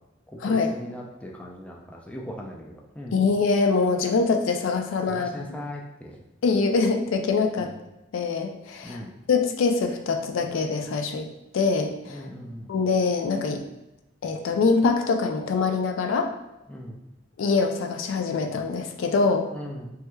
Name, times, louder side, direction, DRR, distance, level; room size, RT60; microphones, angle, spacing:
voice 1, 0.3-3.2 5.1-6.2 7.6-7.8 8.8-9.2 12.1-12.7 16.7-17.0 19.5-19.9, equal, 5° left, -1 dB, 0.3 m, -39 dB
voice 2, 3.1-5.3 6.4-7.7 8.1-9.0 9.3-11.3 11.5-12.2 12.7-13.6 14.2-16.3 17.4-19.5, left 4 dB, 85° left, 5 dB, 0.4 m, -24 dB
3.3 x 3.0 x 2.2 m, 0.95 s
head